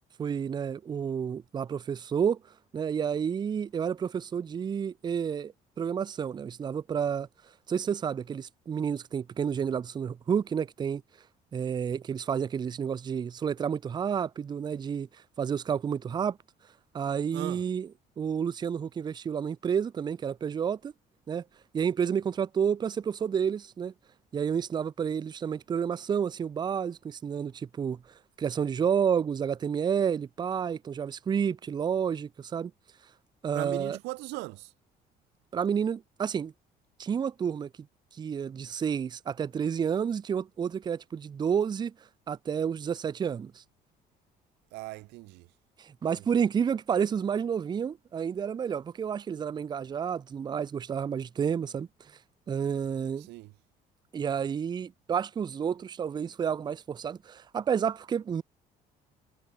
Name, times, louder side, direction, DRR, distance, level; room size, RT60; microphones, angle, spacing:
voice 1, 0.2-2.4 2.7-7.3 7.7-11.0 11.5-15.1 15.4-16.4 16.9-17.9 18.2-20.9 21.3-21.4 21.7-23.9 24.3-28.0 28.4-32.7 33.4-34.0 35.5-36.5 37.0-37.7 38.2-41.9 42.3-43.6 45.8-51.9 52.5-53.3 54.1-58.4, right 7 dB, 25° right, 0.4 m, -30 dB
voice 2, 17.3-17.6 33.5-34.7 44.7-45.5 46.1-46.3 53.2-53.5, right 23 dB, 90° right, 0.5 m, -39 dB
cardioid pair, 110°, 17 cm